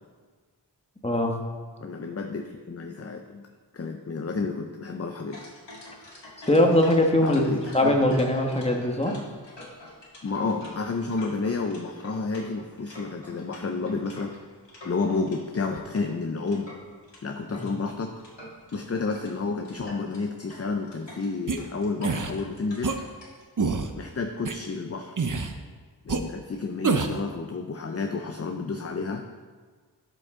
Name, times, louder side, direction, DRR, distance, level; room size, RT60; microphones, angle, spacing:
voice 1, 1.0-1.3 6.5-9.1 17.6-17.7, left 1 dB, 15° left, 2 dB, 1.3 m, -21 dB
voice 2, 1.8-3.5 3.7-5.4 7.2-8.0 10.2-14.4 14.8-16.7 17.2-18.2 18.7-22.9 24.0-25.1 26.0-29.2, left 4 dB, 35° left, 4 dB, 0.6 m, -30 dB
sound 1, 5.3-15.4 15.7-17.7 18.1-18.8 19.1-19.3 19.6-23.4, left 1 dB, 75° left, 2.1 m, -46 dB
sound 2, 21.5-21.6 22.0-22.3 22.8-23.0 23.6-23.9 24.5-24.6 25.2-25.5 26.1-26.2 26.8-27.2, right 4 dB, 45° right, 0.7 m, -26 dB
12.0 x 5.3 x 3.7 m, 1.5 s
wide cardioid pair, 45°, 43 cm